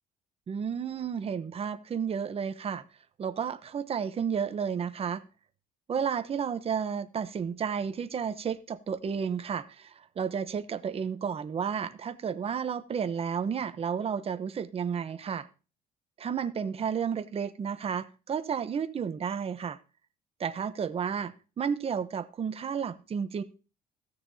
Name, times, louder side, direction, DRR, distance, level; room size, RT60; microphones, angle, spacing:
voice 1, 0.5-2.8 3.2-5.2 5.9-15.5 16.2-19.8 20.4-23.4, right 7 dB, 35° right, 0.9 m, -32 dB
16.5 x 6.7 x 2.7 m
cardioid pair, 110°, 17 cm